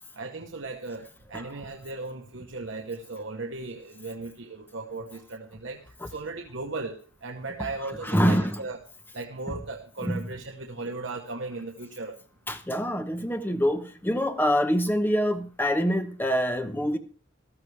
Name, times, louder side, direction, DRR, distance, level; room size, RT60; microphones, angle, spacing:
voice 1, 0.1-8.8 9.1-12.2, right 3 dB, 80° right, 1.1 m, -37 dB
voice 2, 8.1-8.5 10.0-10.2 12.5-17.0, equal, 10° left, 0.9 m, -25 dB
14.0 x 13.5 x 3.4 m
head